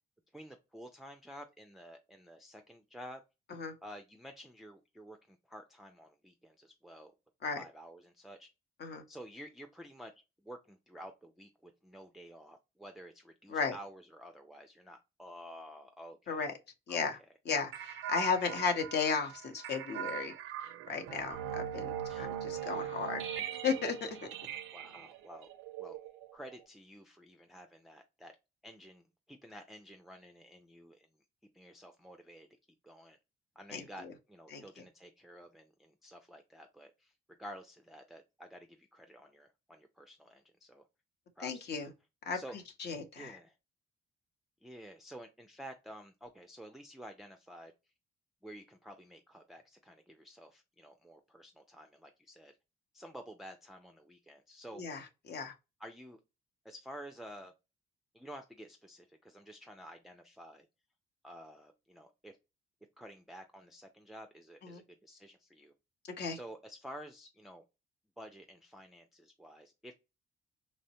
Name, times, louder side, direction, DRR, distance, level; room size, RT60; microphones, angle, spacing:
voice 1, 0.3-3.2 3.8-7.1 7.6-8.5 9.1-10.1 10.4-16.5 16.9-17.1 22.1-22.3 24.7-25.5 25.8-26.0 26.3-28.3 28.6-31.1 31.5-32.5 32.8-33.2 33.6-37.1 37.4-40.9 41.4-41.9 42.3-42.6 43.2-43.6 44.6-47.7 48.4-52.5 52.9-54.8 55.8-56.2 56.6-57.5 58.1-60.7 61.2-62.4 63.0-65.7 66.3-67.6 68.2-69.9, equal, ahead, 0.3 m, -51 dB
voice 2, 16.9-17.2 17.5-20.3 20.6-23.2 23.6-24.2 33.7-34.1 34.5-34.8 41.4-41.9 42.3-42.4 42.8-43.4 54.7-55.5 64.6-64.8 66.1-66.4, left 5 dB, 60° left, 0.8 m, -35 dB
sound 1, 17.7-26.6, right 10 dB, 85° right, 0.4 m, -41 dB
3.0 x 2.1 x 2.7 m
cardioid pair, 90°, 20 cm